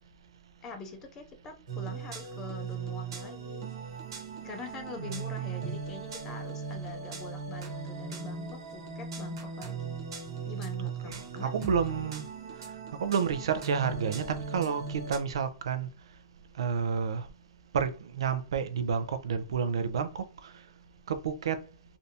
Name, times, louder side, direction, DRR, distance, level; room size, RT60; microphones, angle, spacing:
voice 1, 0.6-3.7 4.4-10.0 10.5-12.1, left 3 dB, 15° left, 0.4 m, -45 dB
sound 1, 1.7-15.2, right 4 dB, 60° right, 1.1 m, -39 dB
voice 2, 4.9-5.8 10.8-12.2 13.0-15.9 16.6-17.3 17.7-20.5 21.1-21.6, right 6 dB, 85° right, 0.5 m, -30 dB
3.4 x 2.6 x 2.7 m
supercardioid pair, 180°, 3 cm